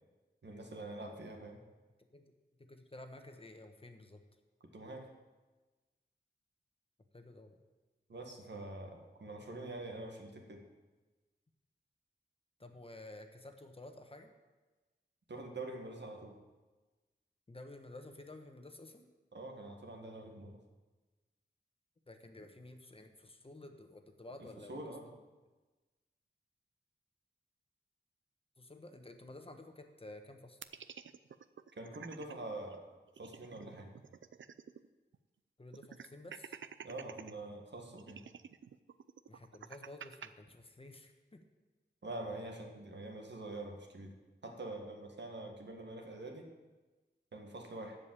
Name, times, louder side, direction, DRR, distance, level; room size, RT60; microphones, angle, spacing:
voice 1, 0.4-1.6 4.7-5.1 8.1-10.6 15.3-16.4 19.3-20.6 24.4-25.0 31.7-32.8 33.2-34.0 36.8-38.2 42.0-44.1 44.4-46.5 47.3-48.0, right 2 dB, 65° right, 2 dB, 1.9 m, -45 dB
voice 2, 2.6-4.2 7.1-7.6 12.6-14.3 17.5-19.1 22.1-25.2 28.6-30.6 35.6-36.6 39.3-41.4, left 2 dB, 30° left, 5 dB, 1.1 m, -52 dB
sound 1, 30.6-32.3 32.7-32.8 33.1-34.9 35.1-35.2 35.7-37.3 38.0-40.3, right 7 dB, 85° right, 0.5 m, -50 dB
14.0 x 5.3 x 8.9 m, 1.2 s
wide cardioid pair, 105°, 19 cm